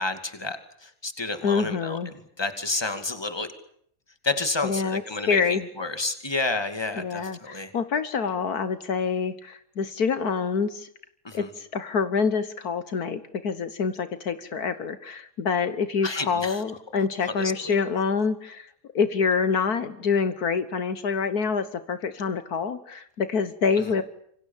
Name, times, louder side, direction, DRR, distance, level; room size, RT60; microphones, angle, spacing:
voice 1, 0.0-3.5 4.2-7.7 11.2-11.5 16.0-16.6 17.2-17.7 23.8-23.9, left 3 dB, 15° left, 8 dB, 2.4 m, -30 dB
voice 2, 1.4-2.1 4.6-5.0 5.3-5.7 7.0-10.9 11.3-18.7 19.0-24.0, left 5 dB, 70° left, 12 dB, 1.8 m, -26 dB
27.0 x 25.0 x 7.3 m, 0.67 s
omnidirectional pair, 1.7 m